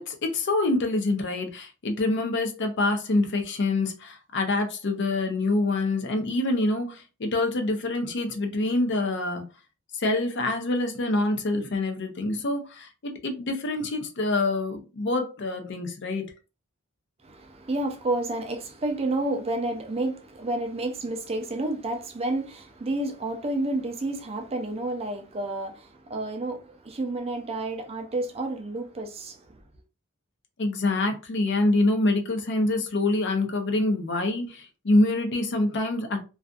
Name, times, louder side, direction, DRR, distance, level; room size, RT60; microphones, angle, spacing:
voice 1, 0.0-9.4 9.9-16.2 30.6-36.2, left 2 dB, 55° left, 0.6 m, -26 dB
voice 2, 17.2-29.6, right 2 dB, 30° right, 0.4 m, -30 dB
2.5 x 2.4 x 2.3 m
head